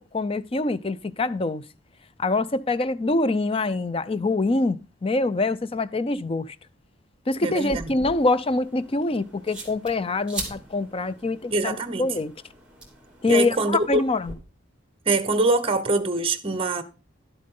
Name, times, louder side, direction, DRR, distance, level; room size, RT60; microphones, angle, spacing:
voice 1, 0.1-1.6 2.2-4.8 5.0-6.5 7.3-12.3 13.2-14.3, left 2 dB, 30° left, 0.5 m, -24 dB
voice 2, 7.4-8.0 11.5-12.1 13.3-14.0 15.1-16.8, right 2 dB, 30° right, 1.0 m, -24 dB
sound 1, 7.5-14.3, right 2 dB, 5° right, 2.9 m, -41 dB
11.5 x 7.6 x 3.8 m
head